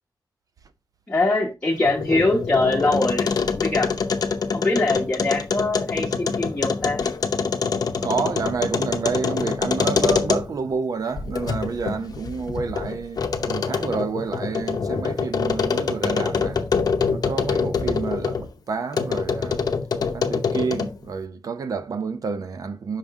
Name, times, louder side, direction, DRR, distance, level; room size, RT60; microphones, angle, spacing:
voice 1, 1.1-3.3 3.5-3.9 4.5-7.0, left 2 dB, 15° left, 1.1 m, -23 dB
sound 1, 1.7-10.7 11.2-18.5 18.9-21.0, left 5 dB, 60° left, 0.7 m, -25 dB
voice 2, 8.0-16.6 17.1-19.9 20.1-23.0, right 5 dB, 50° right, 0.6 m, -29 dB
5.8 x 5.2 x 3.5 m
wide cardioid pair, 175°, 8 cm